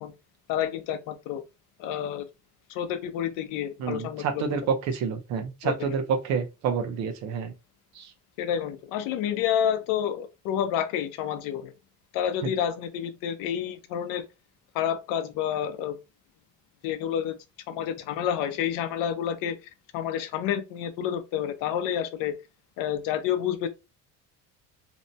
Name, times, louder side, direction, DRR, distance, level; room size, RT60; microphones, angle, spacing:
voice 1, 0.5-1.4 1.8-2.3 2.7-4.4 5.6-5.9 8.4-11.7 12.1-14.3 14.7-16.0 16.8-17.4 17.7-19.6 19.9-22.4 22.8-23.7, left 9 dB, 85° left, 0.5 m, -29 dB
voice 2, 3.8-7.5 8.0-8.1, right 6 dB, 60° right, 0.6 m, -28 dB
2.7 x 2.1 x 2.6 m
cardioid pair, 175°, 32 cm